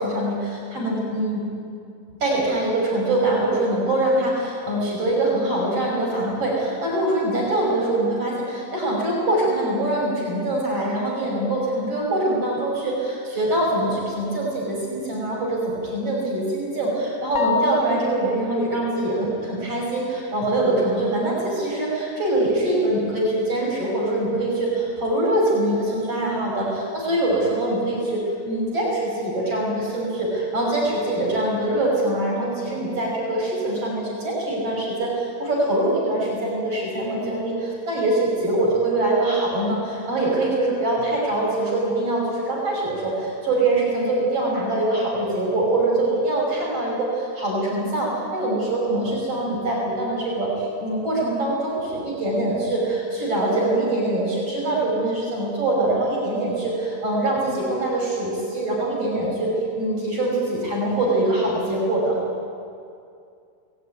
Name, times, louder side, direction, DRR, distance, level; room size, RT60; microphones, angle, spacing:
voice 1, 0.0-1.4 2.2-62.2, right 1 dB, 45° right, -3 dB, 6.8 m, -23 dB
sound 1, 17.3-18.4, left 6 dB, 40° left, 1.1 m, -26 dB
28.5 x 19.0 x 9.5 m, 2.4 s
omnidirectional pair, 3.8 m